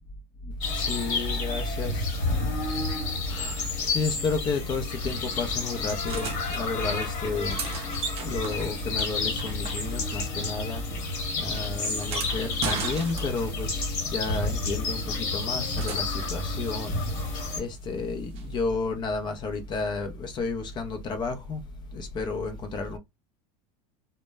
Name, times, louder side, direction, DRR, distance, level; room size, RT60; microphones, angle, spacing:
sound 1, 0.6-17.6, left 3 dB, 50° left, 1.0 m, -30 dB
voice 1, 0.7-2.0 2.6-2.9 3.3-7.6 8.2-10.8 11.4-17.0 17.6-21.6 21.9-23.0, left 4 dB, 30° left, 0.5 m, -31 dB
sound 2, 5.9-6.6 7.2-10.2 10.5-13.6 15.1-16.4 18.3-18.4, right 6 dB, 40° right, 0.6 m, -37 dB
2.1 x 2.0 x 3.3 m
supercardioid pair, 140°, 16 cm